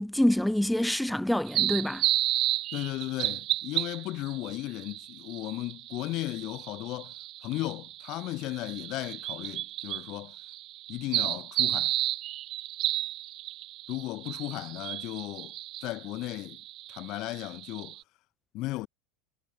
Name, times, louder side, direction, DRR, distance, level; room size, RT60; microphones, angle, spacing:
voice 1, 0.0-2.1, left 1 dB, 5° left, 0.5 m, -26 dB
sound 1, 1.5-18.0, right 15 dB, 45° right, 0.9 m, -33 dB
voice 2, 2.7-7.1 7.4-10.4 10.9-11.9 13.9-15.5 15.8-16.6 16.9-18.0 18.5-18.9, left 18 dB, 45° left, 0.8 m, -35 dB
figure-of-eight pair, 80°, 0 cm